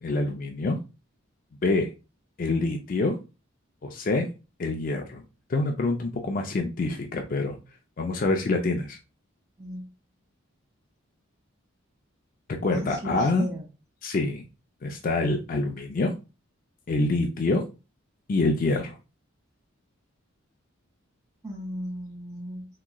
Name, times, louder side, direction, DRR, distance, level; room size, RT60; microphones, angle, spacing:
voice 1, 0.0-0.8 1.6-1.9 2.4-3.2 3.8-4.3 4.6-5.2 5.5-7.6 8.0-9.0 12.6-13.4 14.0-14.4 14.8-16.1 16.9-17.6 18.3-19.0, left 2 dB, 40° left, 4 dB, 0.4 m, -26 dB
voice 2, 9.6-9.9 12.7-13.7 21.4-22.7, equal, 15° right, -5 dB, 1.8 m, -35 dB
3.5 x 2.9 x 2.2 m, 0.29 s
head